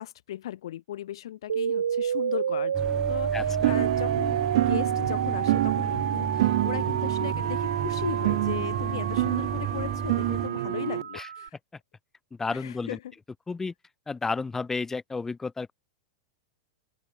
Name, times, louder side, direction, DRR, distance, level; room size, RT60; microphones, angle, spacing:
voice 1, 0.0-11.6 12.5-13.1, left 12 dB, 70° left, 4.7 m, -37 dB
sound 1, 1.5-11.5, right 8 dB, 85° right, 1.3 m, -30 dB
sound 2, 2.7-10.5, right 6 dB, 20° right, 2.8 m, -34 dB
voice 2, 3.3-3.7 11.1-11.3 12.4-13.0 13.5-13.7 14.1-15.7, left 4 dB, 15° left, 1.8 m, -32 dB
sound 3, 3.6-11.0, right 17 dB, 65° right, 2.0 m, -28 dB
open air
hypercardioid pair, 110°, 3 cm